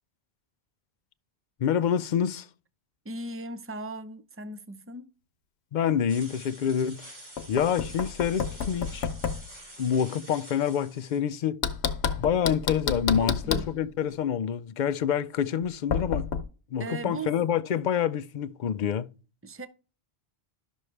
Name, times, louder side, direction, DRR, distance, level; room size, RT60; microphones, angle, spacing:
voice 1, 1.6-2.5 5.7-7.1 7.5-9.1 9.8-11.6 12.2-16.3 16.7-19.1, left 8 dB, 55° left, 0.6 m, -27 dB
voice 2, 3.0-5.1 13.2-13.7 16.8-17.3 19.4-19.7, right 2 dB, 15° right, 0.6 m, -38 dB
sound 1, 6.1-11.2, right 1 dB, 45° right, 3.0 m, -47 dB
Knock, 7.4-9.5 11.6-13.7 15.9-16.4, left 6 dB, 80° left, 1.1 m, -29 dB
12.0 x 6.3 x 3.2 m
omnidirectional pair, 1.1 m